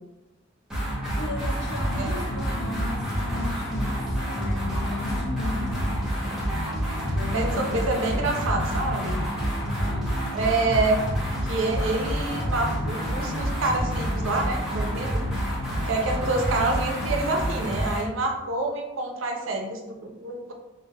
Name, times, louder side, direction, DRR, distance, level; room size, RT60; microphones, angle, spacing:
sound 1, 0.7-18.1, equal, 5° right, 0.7 m, -28 dB
voice 1, 1.1-4.0 4.3-6.0 7.1-8.3 8.6-9.2 9.8-10.1, left 2 dB, 60° left, 2 dB, 0.4 m, -36 dB
voice 2, 7.3-9.3 10.3-11.0 11.4-15.2 15.8-20.5, right 2 dB, 75° right, 2 dB, 0.5 m, -27 dB
3.2 x 2.0 x 2.2 m, 0.98 s
head